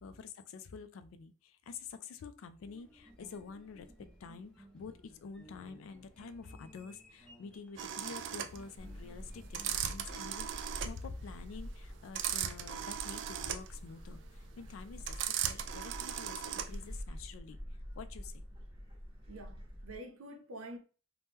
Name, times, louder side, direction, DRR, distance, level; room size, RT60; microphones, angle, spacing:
voice 1, 0.0-15.2 15.4-17.6 18.0-18.4, left 5 dB, 80° left, 0.3 m, -48 dB
sound 1, 2.7-9.7, equal, 5° left, 0.6 m, -59 dB
sound 2, 7.8-17.0, right 9 dB, 60° right, 0.3 m, -38 dB
Gull seagull, 8.8-20.0, equal, 25° right, 0.9 m, -47 dB
voice 2, 19.3-20.8, right 1 dB, 90° right, 0.6 m, -47 dB
2.8 x 2.1 x 3.4 m
head